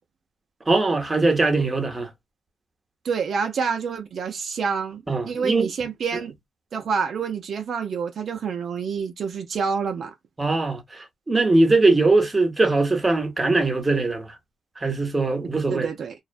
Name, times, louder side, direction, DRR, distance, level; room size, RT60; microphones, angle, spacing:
voice 1, 0.7-2.1 5.1-5.7 10.4-14.3 14.8-15.9, right 3 dB, 20° right, 0.8 m, -21 dB
voice 2, 3.0-6.3 6.7-10.1 15.7-16.1, right 6 dB, 65° right, 0.5 m, -27 dB
2.4 x 2.1 x 2.5 m
cardioid pair, 90°, 0 cm